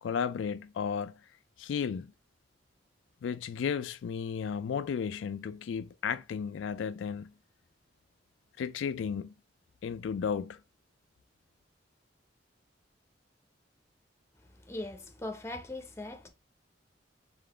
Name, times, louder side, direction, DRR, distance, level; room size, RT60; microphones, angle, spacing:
voice 1, 0.0-1.2 1.6-2.1 3.2-7.3 8.6-9.3 9.8-10.6, left 7 dB, 85° left, 0.3 m, -34 dB
voice 2, 14.7-16.3, left 2 dB, 15° left, 0.7 m, -40 dB
3.9 x 3.7 x 3.3 m
head